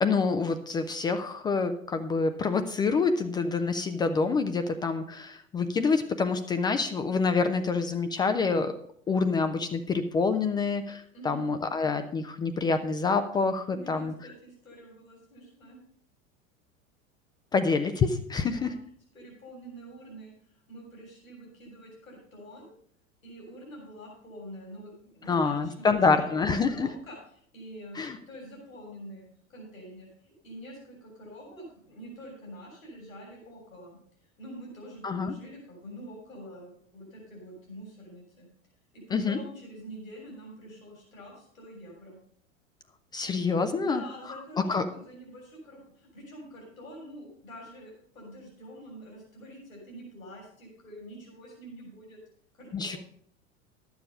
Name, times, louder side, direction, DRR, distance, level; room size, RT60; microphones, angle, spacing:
voice 1, 0.0-8.7 9.1-14.1 17.5-18.7 25.3-26.9 27.9-28.2 35.0-35.3 39.1-39.4 43.1-44.0 44.7-44.9 52.7-53.0, left 4 dB, 10° left, 9 dB, 0.3 m, -27 dB
voice 2, 11.1-11.5 13.7-15.8 18.4-18.7 19.1-22.7 23.2-27.2 27.5-28.0 28.3-38.5 38.9-42.2 43.7-52.2 52.5-53.0, equal, 80° left, -2 dB, 3.5 m, -46 dB
12.0 x 7.1 x 5.3 m, 0.65 s
figure-of-eight pair, 85°, 40 cm